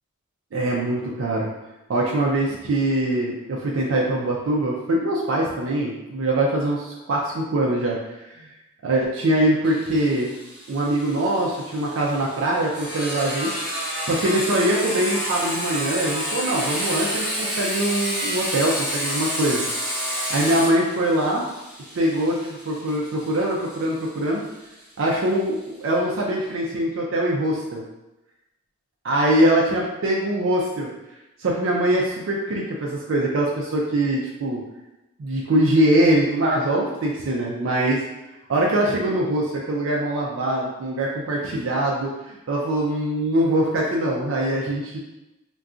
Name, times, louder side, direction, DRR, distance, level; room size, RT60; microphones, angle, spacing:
voice 1, 0.5-1.5 1.9-8.5 8.8-10.3 10.7-13.5 14.0-19.6 20.3-21.4 21.9-22.4 22.6-24.4 25.0-27.8 29.0-30.9 31.4-34.6 35.2-38.0 38.5-45.0, right 1 dB, 65° right, -3 dB, 0.4 m, -23 dB
Sawing, 9.6-25.1, equal, 5° right, 0.7 m, -30 dB
2.4 x 2.2 x 3.7 m, 0.98 s
head